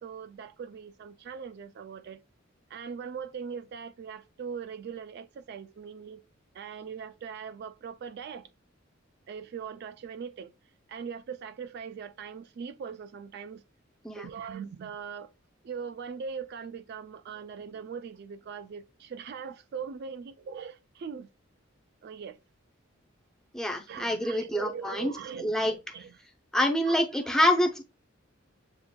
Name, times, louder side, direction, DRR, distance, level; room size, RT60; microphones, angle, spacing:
voice 1, 0.0-2.2 2.7-6.2 6.5-8.5 9.3-10.5 10.9-13.6 14.2-15.3 15.6-21.3 22.0-22.4 23.9-26.1 26.8-27.0 27.3-27.4, right 6 dB, 55° right, 0.3 m, -40 dB
voice 2, 23.5-25.7 26.5-27.8, left 1 dB, 5° left, 0.6 m, -26 dB
7.1 x 2.5 x 2.2 m
head